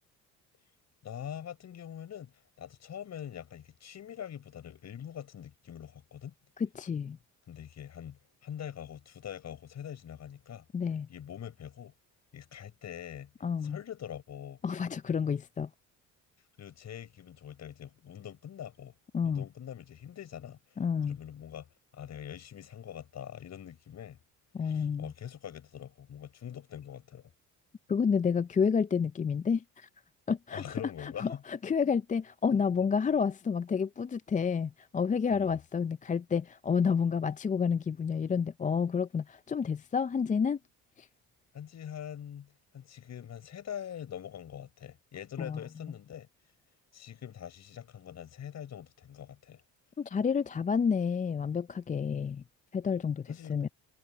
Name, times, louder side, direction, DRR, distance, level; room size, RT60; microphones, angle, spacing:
voice 1, 1.0-6.3 7.5-10.7 11.1-11.9 12.3-13.3 13.6-14.6 16.6-18.9 19.2-20.8 21.1-24.2 24.6-27.3 30.5-31.4 35.3-35.6 41.5-46.3 46.9-49.6 53.3-53.7, left 9 dB, 55° left, 5.9 m, -44 dB
voice 2, 6.6-7.2 10.7-11.1 13.4-13.8 14.6-15.7 19.1-19.4 20.8-21.2 24.5-25.1 27.9-29.9 30.3-30.7 31.0-40.6 41.0-41.1 45.4-45.6 50.0-52.4 52.7-53.7, left 6 dB, 25° left, 0.5 m, -29 dB
supercardioid pair, 85°, 33 cm